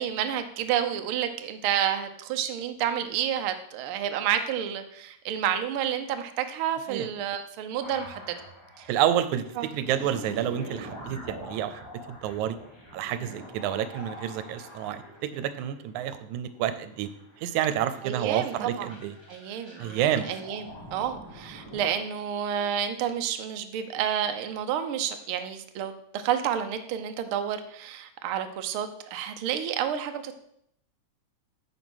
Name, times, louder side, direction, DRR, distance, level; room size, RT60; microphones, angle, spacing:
voice 1, 0.0-8.4 8.8-8.9 9.6-9.7 18.0-18.9 19.3-30.3, right 9 dB, 70° right, 7 dB, 1.3 m, -30 dB
sound 1, 7.8-21.9, equal, 10° left, 2.4 m, -45 dB
voice 2, 8.9-11.8 12.1-12.6 12.9-17.1 17.4-19.1 19.8-20.3, right 10 dB, 90° right, 12 dB, 2.1 m, -29 dB
9.3 x 5.7 x 6.3 m, 0.73 s
omnidirectional pair, 3.3 m